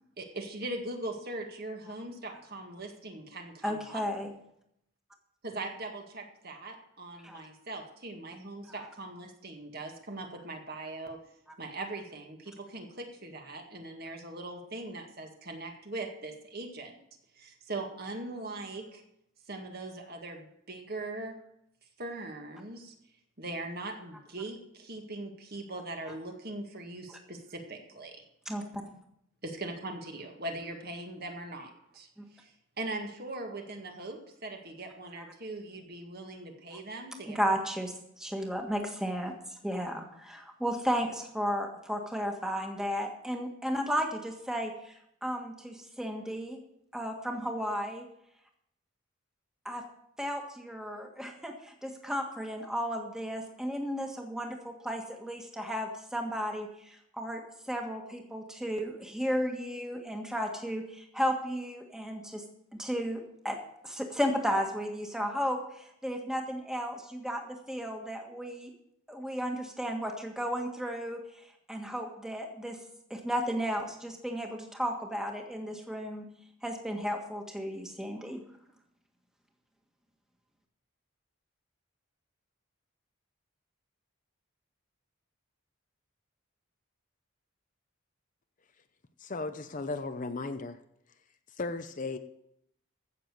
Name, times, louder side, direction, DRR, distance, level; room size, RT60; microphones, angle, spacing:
voice 1, 0.2-4.0 5.4-11.2 11.6-17.0 17.4-19.0 19.5-21.4 22.0-22.9 23.4-28.2 29.4-32.1 32.3-37.6, right 2 dB, 45° right, 3 dB, 1.9 m, -40 dB
voice 2, 3.6-4.3 7.2-7.4 8.7-8.9 26.1-26.2 28.5-28.8 32.2-32.3 36.7-36.8 37.3-39.4 39.6-46.6 46.9-48.1 49.6-49.8 50.2-62.4 62.7-68.7 69.1-71.4 71.7-72.8 73.1-76.3 76.6-78.4, equal, 5° right, 2 dB, 1.6 m, -34 dB
voice 3, 89.2-90.8 91.5-92.2, left 3 dB, 40° left, 9 dB, 0.7 m, -35 dB
15.5 x 6.9 x 6.7 m, 0.75 s
head